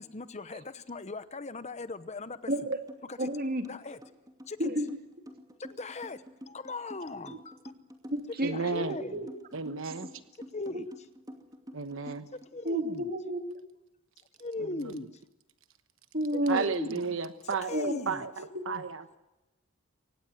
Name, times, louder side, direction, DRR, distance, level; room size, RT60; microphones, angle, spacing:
voice 1, 0.0-2.5 3.1-3.3 3.7-4.0 4.5-4.7 5.6-7.6 8.5-9.3 10.5-10.9 12.3-13.1 14.4-15.1 16.5-17.0 17.4-18.2, left 3 dB, 30° left, 13 dB, 0.9 m, -39 dB
voice 2, 2.5-2.8 3.2-3.6 4.6-5.0 8.1-9.3 9.8-9.9 12.6-13.6 16.1-16.6 17.7-18.2 18.5-18.6, equal, 40° right, 6 dB, 2.5 m, -31 dB
sound 1, 2.9-3.0 3.3-12.5, equal, 15° right, 2.5 m, -47 dB
voice 3, 8.4-9.0 9.5-10.1 11.7-12.3 14.7-15.0 16.5-17.8 18.1-18.3 18.7-19.0, right 5 dB, 60° right, 10 dB, 1.1 m, -33 dB
24.5 x 19.0 x 7.9 m, 0.99 s
head